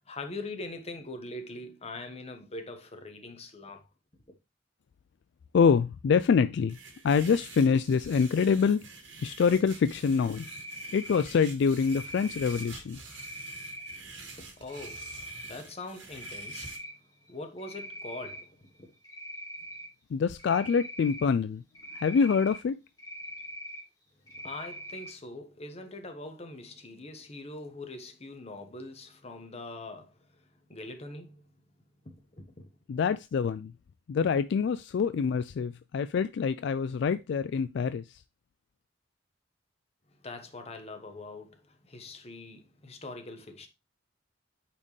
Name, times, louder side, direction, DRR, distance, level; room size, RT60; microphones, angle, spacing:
voice 1, 0.1-3.9 14.2-16.7 17.3-18.9 24.3-31.4 32.0-32.6 40.2-43.7, left 2 dB, 35° left, 1.2 m, -43 dB
voice 2, 5.5-6.8 7.0-8.9 9.2-10.5 10.9-13.0 20.1-21.6 21.9-22.8 32.9-33.7 34.1-38.2, left 6 dB, 65° left, 0.3 m, -25 dB
sound 1, 6.7-16.8, right 3 dB, 75° right, 1.8 m, -48 dB
Cricket, 10.3-11.2 11.8-12.7 13.1-14.0 14.7-15.5 15.9-16.9 17.3-18.4 19.0-19.9 20.4-21.3 21.8-22.6 23.0-23.8 24.3-25.1, equal, 20° left, 2.1 m, -42 dB
8.7 x 4.4 x 3.2 m
head